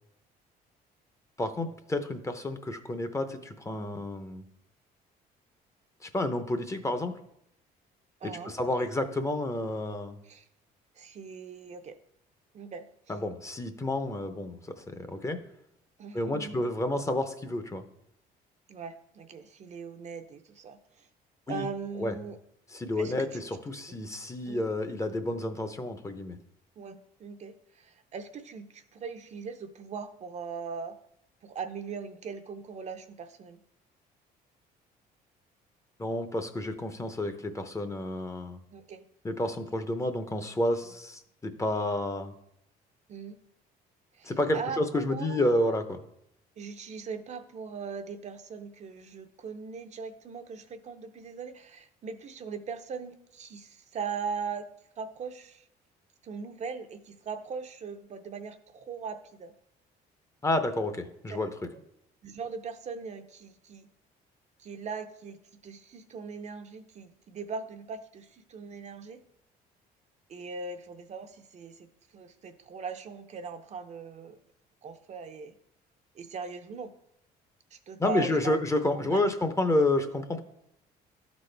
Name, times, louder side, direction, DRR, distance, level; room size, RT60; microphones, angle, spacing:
voice 1, 1.4-4.4 6.0-7.2 8.2-10.2 13.1-15.4 16.1-17.8 21.5-21.7 22.0-22.2 22.7-26.4 36.0-38.6 39.2-42.3 44.2-46.0 60.4-61.5 78.0-80.4, left 1 dB, 15° left, 9 dB, 0.6 m, -30 dB
voice 2, 8.2-8.9 10.3-10.5 11.0-12.0 12.5-12.9 16.0-16.7 18.7-21.1 21.5-22.4 23.0-23.4 23.9-24.0 24.5-24.7 26.8-30.9 31.4-33.6 38.7-39.1 43.1-43.4 44.1-45.7 46.6-54.7 55.0-55.6 56.2-59.5 62.2-63.9 64.6-69.2 70.3-71.9 72.1-74.4 74.8-75.5 76.2-76.9 77.7-78.6 79.0-79.3, right 5 dB, 45° right, 8 dB, 0.5 m, -40 dB
12.0 x 4.1 x 3.3 m, 0.75 s
cardioid pair, 110°, 17 cm